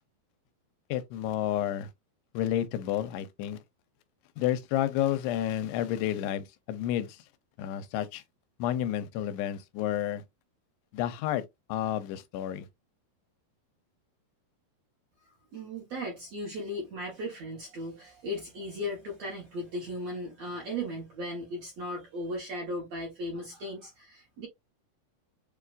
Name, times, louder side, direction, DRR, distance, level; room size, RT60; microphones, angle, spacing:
voice 1, 0.9-1.9 2.3-3.6 4.4-7.2 7.6-8.2 8.6-10.2 10.9-11.4 11.7-12.7, left 11 dB, 85° left, 2.7 m, -30 dB
voice 2, 15.2-24.5, equal, 65° right, 1.7 m, -37 dB
7.0 x 2.3 x 2.4 m
omnidirectional pair, 4.7 m